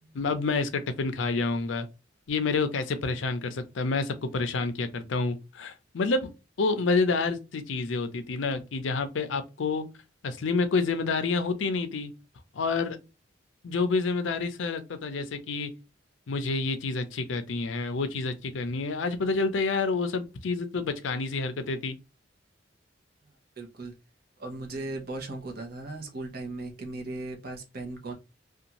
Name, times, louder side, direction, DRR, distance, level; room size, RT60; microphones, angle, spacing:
voice 1, 0.1-1.9 2.3-6.3 6.6-9.8 10.2-12.1 12.5-13.0 13.6-15.7 16.3-22.0, left 4 dB, 80° left, 0.5 m, -28 dB
voice 2, 23.6-23.9 24.4-28.1, right 2 dB, 50° right, 0.8 m, -37 dB
2.6 x 2.3 x 2.8 m
head